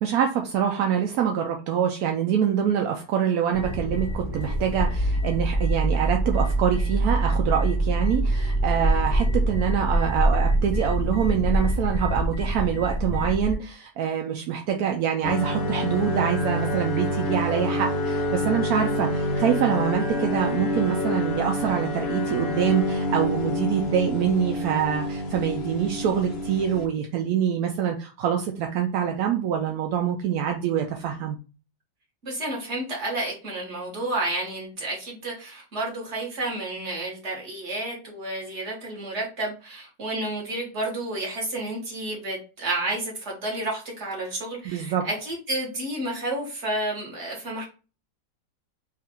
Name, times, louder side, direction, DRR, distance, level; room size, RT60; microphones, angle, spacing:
voice 1, 0.0-31.4 44.6-45.0, right 8 dB, 70° right, 2 dB, 0.9 m, -25 dB
sound 1, 3.5-13.5, right 1 dB, 20° left, 0.5 m, -24 dB
sound 2, 15.2-26.9, left 1 dB, 65° left, 0.6 m, -27 dB
voice 2, 32.2-47.6, right 2 dB, 40° right, -2 dB, 1.6 m, -31 dB
3.7 x 2.5 x 4.2 m, 0.34 s
omnidirectional pair, 2.0 m